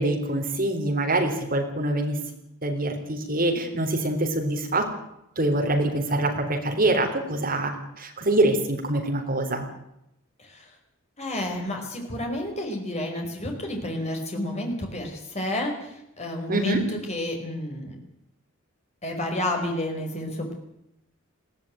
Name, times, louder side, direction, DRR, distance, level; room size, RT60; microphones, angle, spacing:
voice 1, 0.0-2.3 2.6-4.9 5.4-9.7 16.5-16.8, right 1 dB, 40° right, 3 dB, 3.7 m, -25 dB
voice 2, 10.4-10.7 11.2-17.9 19.0-20.6, left 1 dB, 30° left, 2 dB, 5.1 m, -30 dB
21.0 x 16.0 x 9.1 m, 0.82 s
head